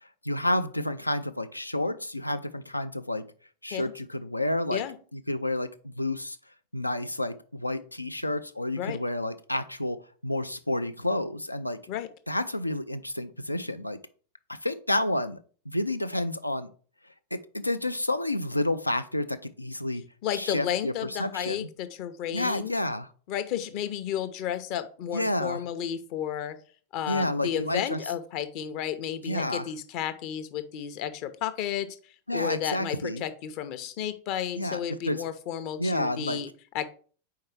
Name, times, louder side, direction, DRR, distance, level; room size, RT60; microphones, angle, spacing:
voice 1, 0.0-3.2 3.6-4.8 5.1-6.4 6.7-10.0 10.2-11.8 12.3-14.0 14.5-15.4 15.7-16.7 17.3-20.0 20.3-21.7 22.3-23.1 25.1-25.6 27.1-28.0 29.2-29.7 32.3-33.2 34.6-34.8 35.1-35.2 35.8-36.4, left 1 dB, 85° left, 11 dB, 0.4 m, -30 dB
voice 2, 20.2-22.8 23.3-26.6 26.9-36.9, left 10 dB, 45° left, 11 dB, 0.6 m, -32 dB
4.7 x 4.5 x 4.6 m, 0.42 s
figure-of-eight pair, 90°, 0 cm